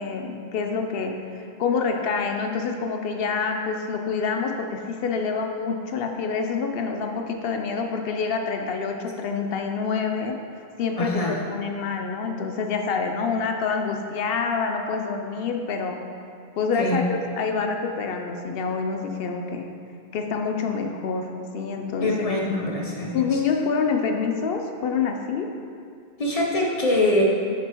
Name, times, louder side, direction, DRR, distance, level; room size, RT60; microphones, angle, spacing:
voice 1, 0.0-10.4 10.8-11.2 11.5-16.0 16.6-19.7 20.1-22.1 23.1-25.5, left 5 dB, 70° left, 4 dB, 0.8 m, -27 dB
voice 2, 11.0-11.3 16.8-17.0 22.0-23.4 26.2-27.2, left 1 dB, 35° left, -2 dB, 0.8 m, -24 dB
7.7 x 5.9 x 3.0 m, 2.3 s
omnidirectional pair, 1.1 m